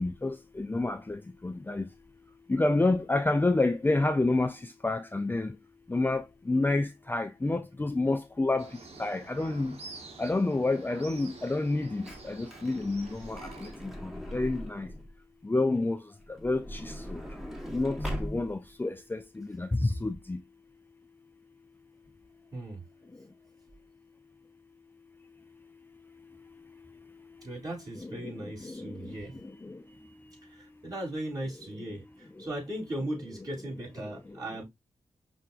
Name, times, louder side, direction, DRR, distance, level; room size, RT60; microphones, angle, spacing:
voice 1, 0.0-1.8 2.5-4.6 4.8-5.5 5.9-8.7 9.0-9.8 10.2-13.7 14.3-14.9 15.4-16.0 16.4-17.2 17.7-20.4 28.0-28.3 28.6-29.1 29.6-29.8, left 2 dB, 20° left, 0.4 m, -29 dB
sound 1, 8.6-13.7, right 3 dB, 65° right, 1.1 m, -48 dB
Truck / Door, 12.0-15.2 16.2-18.7 19.4-19.5 19.7-19.9, equal, 5° right, 1.3 m, -40 dB
voice 2, 22.5-22.8 27.4-29.4 30.5-34.6, right 1 dB, 35° right, 3.0 m, -38 dB
5.5 x 2.6 x 2.4 m
cardioid pair, 45°, 11 cm